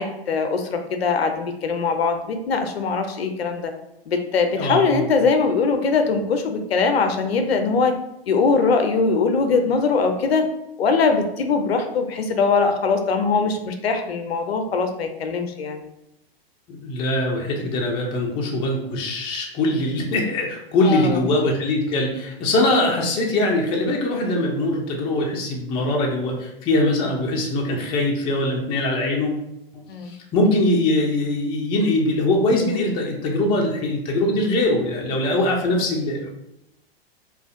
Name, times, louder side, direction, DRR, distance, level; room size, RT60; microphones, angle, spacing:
voice 1, 0.0-3.7 4.1-7.9 8.3-10.5 10.8-15.9 20.8-21.3 29.9-30.1, left 4 dB, 85° left, 6 dB, 0.5 m, -21 dB
voice 2, 4.6-5.0 16.7-29.4 30.1-36.3, left 1 dB, 20° left, 0 dB, 0.3 m, -22 dB
2.4 x 2.2 x 2.5 m, 0.85 s
hypercardioid pair, 110°, 30 cm